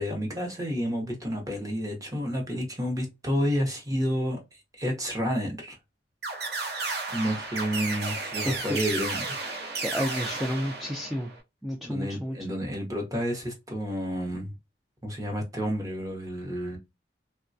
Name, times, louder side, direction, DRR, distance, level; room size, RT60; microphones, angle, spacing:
voice 1, 0.0-4.4 4.8-5.8 7.1-9.7 11.8-14.5 15.0-16.8, equal, 20° right, 0.7 m, -30 dB
sound 1, 6.2-11.4, right 3 dB, 60° right, 0.6 m, -33 dB
voice 2, 8.5-8.8 9.8-11.3 11.6-12.4, equal, ahead, 0.3 m, -30 dB
3.1 x 2.1 x 2.5 m
head